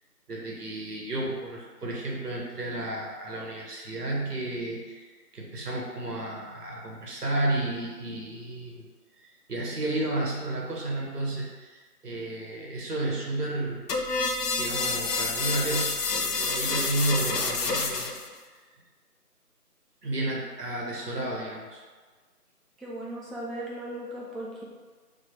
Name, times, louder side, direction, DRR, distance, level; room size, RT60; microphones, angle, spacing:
voice 1, 0.3-5.1 5.3-8.9 9.2-13.9 14.6-18.1 20.0-21.8, right 2 dB, 80° right, -3 dB, 1.1 m, -32 dB
sound 1, 13.9-18.3, left 3 dB, 90° left, 0.6 m, -28 dB
voice 2, 22.8-24.6, right 1 dB, ahead, -5 dB, 0.4 m, -37 dB
2.9 x 2.1 x 4.1 m, 1.4 s
figure-of-eight pair, 170°, 47 cm